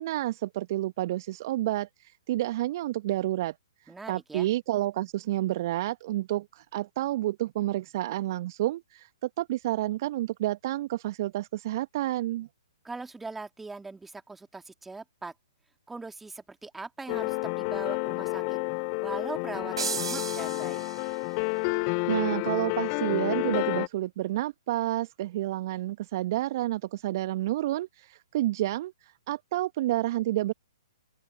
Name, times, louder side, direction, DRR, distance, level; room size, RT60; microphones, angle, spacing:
voice 1, 0.0-3.5 4.1-12.5 21.8-30.5, right 15 dB, 40° right, 1.2 m, -30 dB
voice 2, 3.9-4.5 12.8-15.3 15.9-18.6 19.0-20.8, right 3 dB, 5° right, 2.2 m, -40 dB
sound 1, 17.1-23.9, left 40 dB or more, 30° left, 3.8 m, -30 dB
sound 2, 19.8-21.4, right 5 dB, 70° right, 2.5 m, -35 dB
open air
figure-of-eight pair, 120°, 3 cm